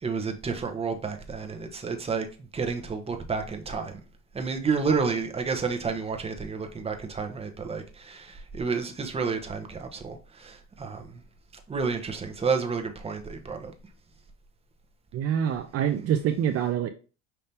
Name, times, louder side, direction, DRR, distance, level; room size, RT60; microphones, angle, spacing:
voice 1, 0.0-2.3 2.5-4.0 4.3-11.2 11.7-13.7, right 5 dB, 20° right, 0.9 m, -30 dB
voice 2, 15.1-16.9, right 9 dB, 50° right, 0.5 m, -26 dB
5.6 x 2.8 x 3.4 m
cardioid pair, 110°, 30 cm